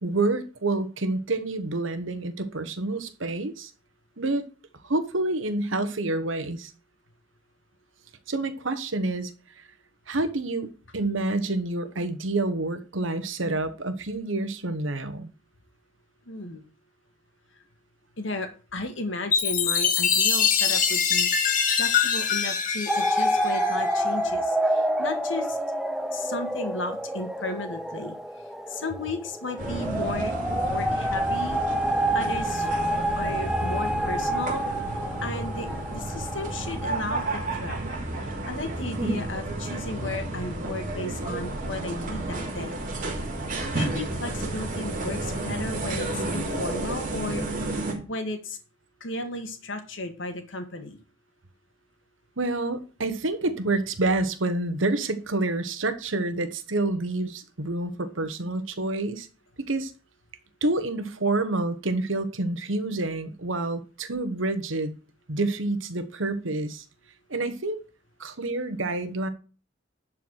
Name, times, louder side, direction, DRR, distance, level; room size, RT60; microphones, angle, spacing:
voice 1, 0.0-3.7 4.2-4.4 4.8-6.7 8.3-9.3 10.1-15.3 52.4-59.3 59.7-59.9 60.6-65.0 65.3-66.8 67.3-67.8 68.2-69.3, right 2 dB, 75° right, 1.3 m, -28 dB
voice 2, 16.3-16.7 18.2-21.3 21.8-25.6 26.1-28.2 28.7-30.3 30.6-32.7 33.2-34.6 35.2-37.8 38.2-42.8 43.7-47.5 48.1-48.6 49.0-51.0, left 2 dB, 70° left, 1.7 m, -34 dB
Chime, 19.3-24.0, left 7 dB, 40° left, 1.4 m, -24 dB
sound 1, 22.9-36.9, right 1 dB, 5° right, 0.5 m, -28 dB
sound 2, 29.6-47.9, right 2 dB, 45° right, 2.7 m, -31 dB
11.0 x 4.7 x 6.4 m
head